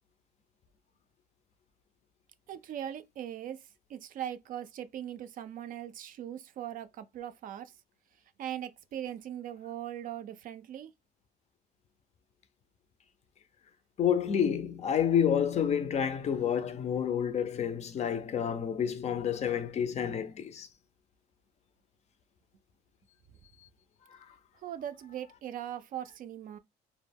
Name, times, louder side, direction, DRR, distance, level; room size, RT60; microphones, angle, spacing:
voice 1, 2.5-3.6 3.9-7.7 8.4-10.9 24.6-26.6, right 10 dB, 55° right, 0.4 m, -40 dB
voice 2, 14.0-20.7, left 8 dB, 40° left, 0.4 m, -29 dB
2.2 x 2.0 x 3.3 m
cardioid pair, 110°, 17 cm